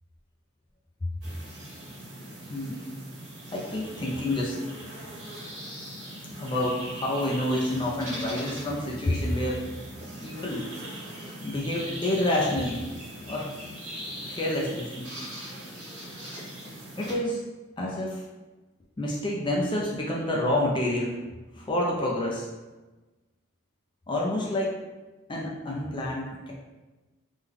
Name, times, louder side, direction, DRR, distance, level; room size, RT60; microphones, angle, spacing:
sound 1, 1.2-17.1, right 1 dB, 65° right, 1.3 m, -40 dB
voice 1, 3.5-4.6 6.4-9.6 10.2-10.7 11.4-12.8 13.3-13.5 14.3-15.1 17.0-17.4 17.8-18.2 19.0-21.2 21.5-22.5 24.1-24.8 25.3-26.5, left 1 dB, 25° left, -3 dB, 0.4 m, -28 dB
3.5 x 2.2 x 3.4 m, 1.2 s
head